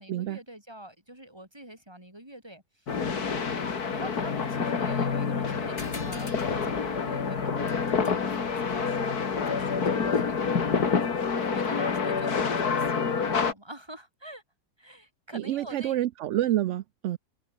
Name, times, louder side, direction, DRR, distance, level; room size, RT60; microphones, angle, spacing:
voice 1, 0.0-3.5 3.9-11.1 11.3-14.4 14.8-16.0, right 1 dB, 15° right, 5.3 m, -45 dB
sound 1, 2.9-13.5, left 5 dB, 70° left, 2.6 m, -27 dB
sound 2, 5.8-10.7, left 3 dB, 45° left, 3.2 m, -46 dB
voice 2, 15.3-17.2, right 13 dB, 70° right, 0.7 m, -28 dB
omnidirectional pair, 1.7 m